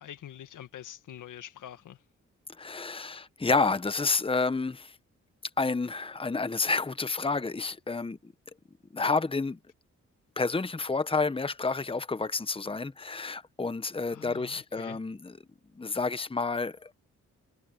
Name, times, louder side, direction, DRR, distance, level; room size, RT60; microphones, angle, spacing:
voice 1, 0.0-2.0 9.1-9.2 14.1-15.0, left 11 dB, 85° left, 1.7 m, -45 dB
voice 2, 2.6-4.9 5.6-8.3 8.9-9.6 10.4-15.3 15.8-16.9, left 4 dB, 20° left, 1.0 m, -29 dB
cardioid pair, 60°, 30 cm